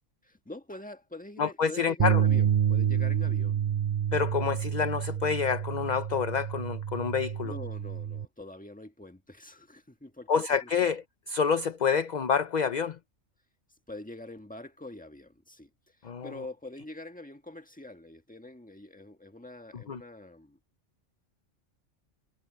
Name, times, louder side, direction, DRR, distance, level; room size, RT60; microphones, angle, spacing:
voice 1, 0.2-3.6 7.4-10.9 13.9-16.0 16.2-20.6, left 2 dB, 5° left, 1.5 m, -45 dB
voice 2, 1.4-2.2 4.1-7.5 10.3-13.0 16.0-16.3 19.9-20.0, left 6 dB, 45° left, 0.7 m, -28 dB
sound 1, 2.0-8.2, right 9 dB, 40° right, 0.6 m, -28 dB
omnidirectional pair, 1.2 m